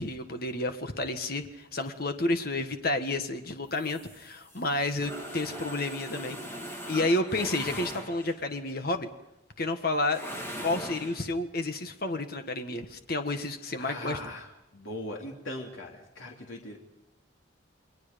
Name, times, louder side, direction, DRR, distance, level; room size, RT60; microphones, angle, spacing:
voice 1, 0.0-6.4 6.9-9.1 9.6-10.2 10.6-14.2, left 2 dB, 50° left, 7 dB, 1.5 m, -30 dB
sound 1, 3.7-8.5 10.0-11.2, equal, 15° left, 2.8 m, -40 dB
voice 2, 13.8-16.8, left 1 dB, 75° left, 0 dB, 3.0 m, -40 dB
29.0 x 22.0 x 5.3 m, 0.85 s
head